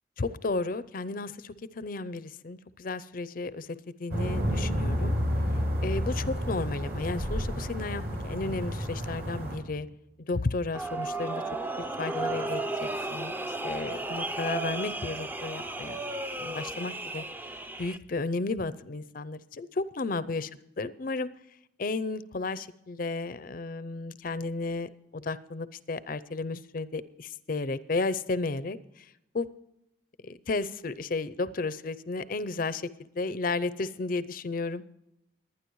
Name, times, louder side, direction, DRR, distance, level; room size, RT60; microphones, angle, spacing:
voice 1, 0.2-5.2 5.8-9.9 10.2-11.6 12.0-13.4 13.6-16.0 16.4-17.2 17.8-20.5 20.8-21.3 21.8-29.1 29.3-29.5 30.2-32.9 33.1-34.8, left 3 dB, 45° left, 15 dB, 0.5 m, -33 dB
sound 1, 4.1-9.6, equal, 50° right, 3.7 m, -30 dB
sound 2, 10.7-18.0, right 2 dB, 10° right, 0.5 m, -34 dB
22.0 x 9.7 x 3.1 m, 0.83 s
head